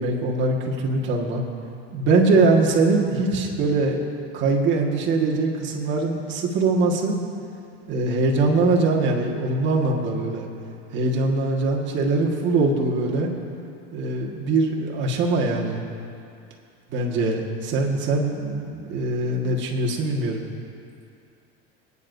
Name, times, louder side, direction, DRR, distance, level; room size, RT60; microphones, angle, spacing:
voice 1, 0.0-1.4 1.9-4.0 4.3-7.2 7.9-10.5 10.9-13.3 13.9-15.8 16.9-20.5, right 3 dB, 40° right, -1 dB, 1.7 m, -22 dB
24.5 x 9.8 x 2.7 m, 2.5 s
supercardioid pair, 140°, 30 cm